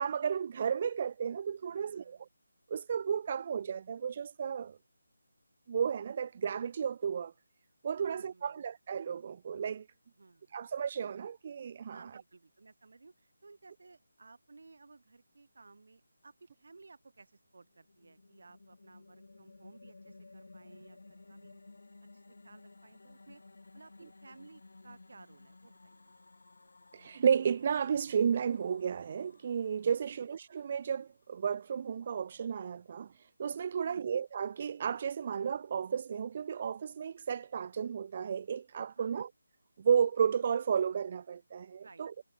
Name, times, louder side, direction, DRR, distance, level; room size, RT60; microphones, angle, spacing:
voice 1, 0.0-2.2 2.7-4.8 5.7-7.3 7.8-9.9 10.5-12.1 26.9-39.3 39.8-42.1, right 7 dB, 30° right, 0.4 m, -33 dB
voice 2, 1.6-2.3 8.0-8.6 10.2-10.9 11.9-21.6 22.1-23.4 23.7-26.1 30.0-30.2 33.7-34.1 38.9-39.2 41.8-42.0, right 3 dB, 60° right, 3.4 m, -58 dB
sound 1, 17.6-31.0, left 3 dB, 70° left, 3.3 m, -57 dB
figure-of-eight pair, 170°, 0 cm